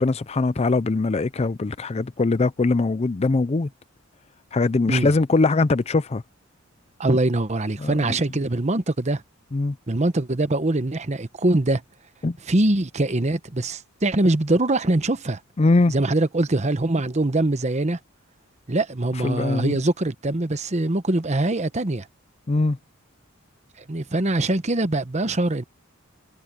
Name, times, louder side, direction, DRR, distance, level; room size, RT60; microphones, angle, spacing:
voice 1, 0.0-3.7 4.5-6.2 7.8-7.9 9.5-9.8 12.2-12.4 15.6-15.9 19.2-19.7 22.5-22.8, left 3 dB, 30° left, 0.4 m, -21 dB
voice 2, 7.0-9.2 9.9-11.8 12.5-15.4 15.9-18.0 18.7-22.1 23.9-25.6, right 2 dB, 35° right, 1.0 m, -23 dB
head